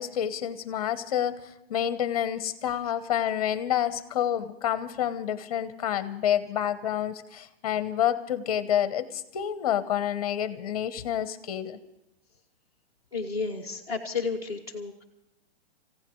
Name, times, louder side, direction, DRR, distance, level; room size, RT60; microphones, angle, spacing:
voice 1, 0.0-1.4 1.7-11.8, left 10 dB, 35° left, 12 dB, 1.0 m, -28 dB
voice 2, 13.1-15.0, left 4 dB, 10° right, 0 dB, 1.7 m, -32 dB
29.0 x 16.0 x 3.1 m, 0.86 s
hypercardioid pair, 175°, 31 cm